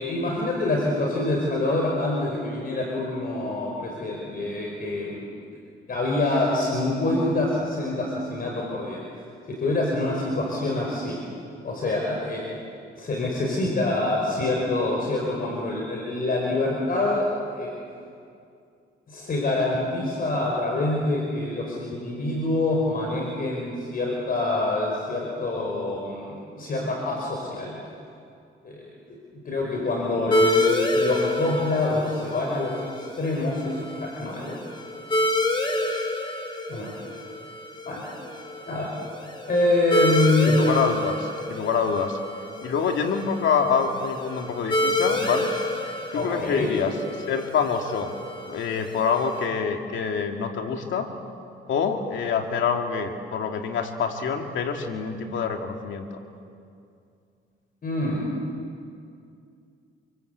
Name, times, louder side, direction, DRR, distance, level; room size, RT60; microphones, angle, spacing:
voice 1, 0.0-5.3 5.9-9.0 9.5-11.2 11.6-12.5 13.0-17.7 19.1-27.8 28.6-28.8 29.1-29.2 29.5-34.6 36.7-36.9 37.8-38.0 38.7-38.9 39.5-40.5 46.1-46.7 57.8-58.3, left 2 dB, 45° left, -2 dB, 5.4 m, -26 dB
sound 1, 30.3-49.5, left 1 dB, 25° left, 4.9 m, -28 dB
voice 2, 40.5-42.2 42.6-45.5 46.1-46.9 47.2-48.2 48.5-51.1 51.7-56.1, left 6 dB, 70° left, 4 dB, 2.5 m, -26 dB
27.5 x 25.0 x 8.2 m, 2.4 s
cardioid pair, 90°, 20 cm